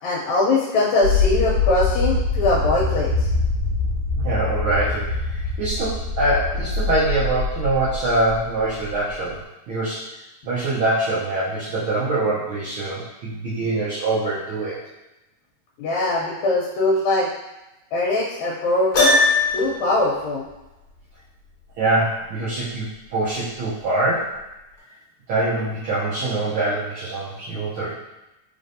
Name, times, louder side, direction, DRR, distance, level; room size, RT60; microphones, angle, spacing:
voice 1, 0.0-3.3 15.8-17.3 17.9-19.2 19.5-20.4, left 2 dB, 75° left, -5 dB, 2.0 m, -21 dB
sound 1, 1.0-9.1, left 4 dB, 50° right, 2.0 m, -24 dB
voice 2, 4.2-9.4 9.7-10.0 10.4-14.8 21.8-24.4 25.3-27.9, right 2 dB, 80° right, -9 dB, 1.2 m, -24 dB
Piano, 18.9-19.8, left 2 dB, 45° left, 2.0 m, -17 dB
4.6 x 3.4 x 2.7 m, 0.96 s
omnidirectional pair, 3.4 m